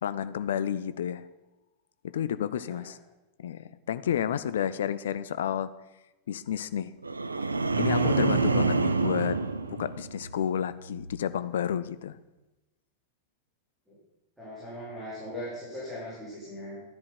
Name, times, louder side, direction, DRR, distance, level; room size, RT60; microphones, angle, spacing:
voice 1, 0.0-1.2 2.0-3.0 3.4-5.7 6.3-6.9 7.8-9.4 9.7-12.2, left 9 dB, 60° left, 15 dB, 0.5 m, -30 dB
voice 2, 2.5-2.9 13.9-14.0 14.4-16.8, left 1 dB, ahead, -9 dB, 4.4 m, -39 dB
sound 1, 7.0-10.5 10.8-11.2, right 3 dB, 80° right, 0.5 m, -28 dB
sound 2, 7.7-10.2, right 9 dB, 55° right, 1.0 m, -33 dB
12.5 x 10.5 x 4.4 m, 1.1 s
figure-of-eight pair, 90°, 0 cm